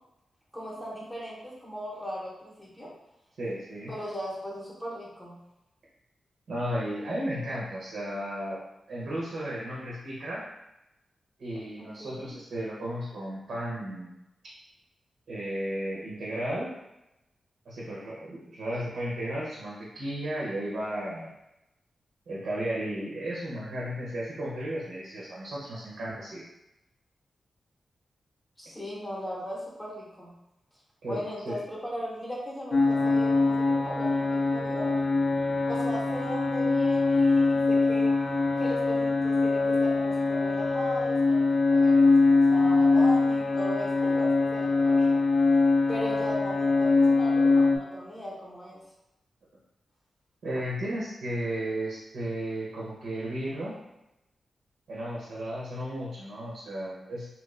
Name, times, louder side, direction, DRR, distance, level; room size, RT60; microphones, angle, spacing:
voice 1, 0.5-2.9 3.9-5.4 11.8-12.3 28.6-30.3 31.1-35.0 35.7-38.1 38.6-41.4 41.7-45.2 45.9-48.8, equal, 10° left, -6 dB, 0.7 m, -38 dB
voice 2, 3.4-3.9 6.5-8.6 8.9-10.4 11.4-14.1 15.3-16.7 17.6-21.3 22.3-26.4 31.0-31.6 50.4-53.8 54.9-57.3, right 1 dB, 80° right, -6 dB, 0.8 m, -34 dB
sound 1, 32.7-47.8, left 3 dB, 35° left, 0.4 m, -23 dB
2.9 x 2.5 x 3.1 m, 0.91 s
wide cardioid pair, 150°, 0 cm